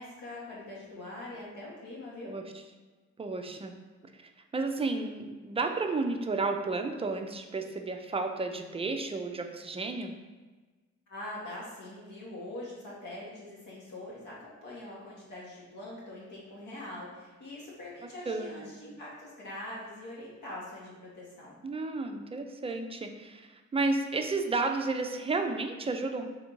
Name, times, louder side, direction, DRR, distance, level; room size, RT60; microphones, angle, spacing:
voice 1, 0.0-2.3 11.1-21.6, left 1 dB, 85° left, -6 dB, 1.3 m, -43 dB
voice 2, 3.2-3.8 4.5-10.1 18.3-18.7 21.6-26.3, right 3 dB, 20° right, 5 dB, 0.4 m, -32 dB
3.5 x 2.6 x 4.4 m, 1.3 s
cardioid pair, 90°, 30 cm